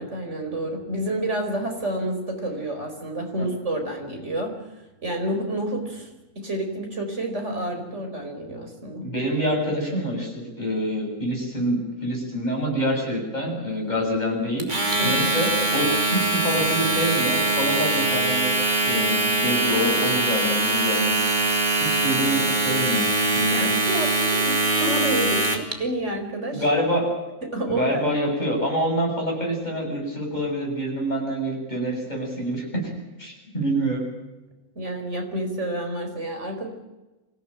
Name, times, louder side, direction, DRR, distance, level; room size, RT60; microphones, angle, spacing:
voice 1, 0.0-4.5 5.0-9.1 15.0-15.2 23.5-26.6 27.4-28.1 34.7-36.7, right 1 dB, 50° right, 3 dB, 5.1 m, -29 dB
voice 2, 9.0-14.7 15.0-21.4 21.8-23.1 23.3-23.7 26.5-27.1 27.7-32.9 33.2-34.1, equal, 30° left, -1 dB, 8.2 m, -26 dB
Domestic sounds home sounds, 14.6-25.7, right 2 dB, 30° right, 3.1 m, -22 dB
25.0 x 16.5 x 9.1 m, 1.1 s
omnidirectional pair, 1.5 m